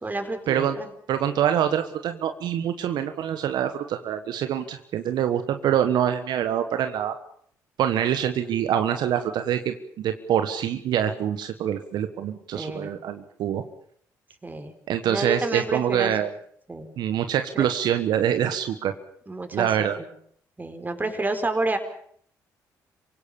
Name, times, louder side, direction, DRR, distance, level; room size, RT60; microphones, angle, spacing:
voice 1, 0.0-0.9 12.5-12.9 14.4-14.8 15.1-16.1 16.7-16.9 17.5-17.7 19.3-19.7 20.0-20.1 20.6-21.8, right 2 dB, 25° right, 7 dB, 4.7 m, -29 dB
voice 2, 1.1-7.1 7.8-13.6 14.9-16.3 17.0-18.9 19.5-20.0, right 10 dB, 70° right, 8 dB, 1.4 m, -25 dB
26.5 x 17.5 x 7.2 m, 0.63 s
supercardioid pair, 60°, 8 cm